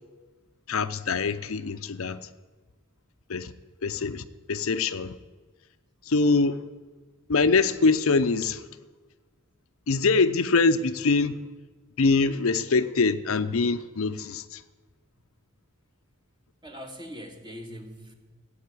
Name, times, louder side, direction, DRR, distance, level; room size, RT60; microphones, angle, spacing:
voice 1, 0.7-2.2 3.3-3.5 3.8-5.1 6.1-6.6 7.3-8.6 9.9-11.4 12.0-14.6, left 4 dB, 80° left, 0.7 m, -24 dB
voice 2, 16.6-18.1, equal, 20° right, 1.8 m, -41 dB
15.0 x 8.7 x 9.8 m
head